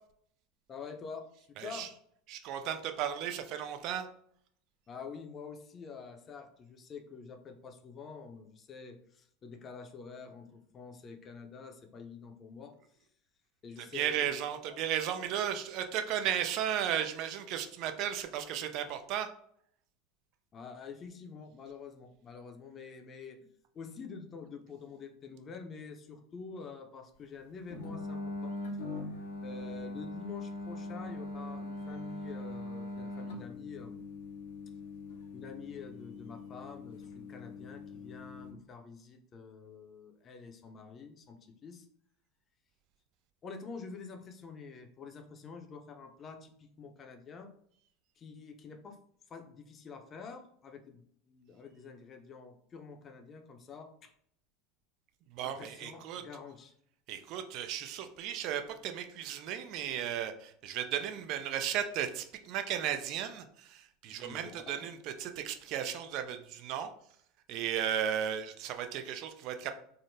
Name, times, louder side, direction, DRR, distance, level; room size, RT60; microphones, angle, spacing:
voice 1, 0.7-1.9 4.9-12.8 13.6-14.3 14.7-14.8 20.5-23.4 23.7-28.6 29.1-34.0 35.3-41.9 43.4-47.5 48.2-49.0 49.3-54.1 55.4-56.7 64.1-64.9, left 5 dB, 35° left, 5 dB, 0.6 m, -47 dB
voice 2, 1.6-1.9 2.3-4.1 13.9-19.3 55.3-56.2 57.1-66.9 67.5-69.7, right 9 dB, 55° right, 7 dB, 0.4 m, -35 dB
sound 1, 27.7-38.5, left 2 dB, 80° left, 0.7 m, -42 dB
3.6 x 2.1 x 2.6 m, 0.65 s
hypercardioid pair, 85°, 0 cm